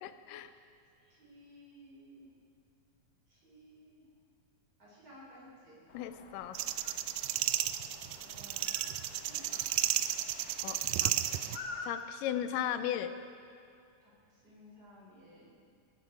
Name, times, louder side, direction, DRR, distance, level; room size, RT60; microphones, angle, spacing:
voice 1, 0.0-0.5 5.9-6.6 10.6-11.1 11.8-13.1, left 10 dB, 90° left, 10 dB, 2.3 m, -36 dB
voice 2, 1.0-2.3 3.3-4.0 4.8-5.8 8.2-8.7 9.2-9.6 14.0-15.5, equal, 30° right, -6 dB, 4.5 m, -56 dB
sound 1, 5.9-11.9, left 4 dB, 70° left, 1.2 m, -49 dB
sound 2, 6.5-11.6, right 13 dB, 85° right, 2.1 m, -33 dB
20.0 x 10.5 x 4.9 m, 2.5 s
omnidirectional pair, 3.7 m